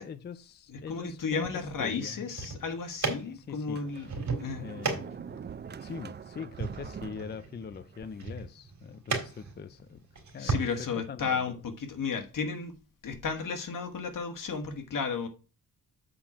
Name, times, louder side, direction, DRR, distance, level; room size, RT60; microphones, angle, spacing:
voice 1, 0.0-2.3 3.2-4.1 4.5-5.4 5.8-10.1 10.3-11.6, left 6 dB, 30° left, 0.4 m, -42 dB
voice 2, 0.7-4.1 4.4-4.6 10.4-12.8 13.0-15.3, left 5 dB, 70° left, 1.6 m, -33 dB
Sliding door, 1.4-2.3 2.9-3.0 3.6-8.4, right 7 dB, 30° right, 0.4 m, -45 dB
sound 1, 2.1-10.7, right 4 dB, 55° right, 2.9 m, -37 dB
7.6 x 4.3 x 5.9 m
wide cardioid pair, 150°, 34 cm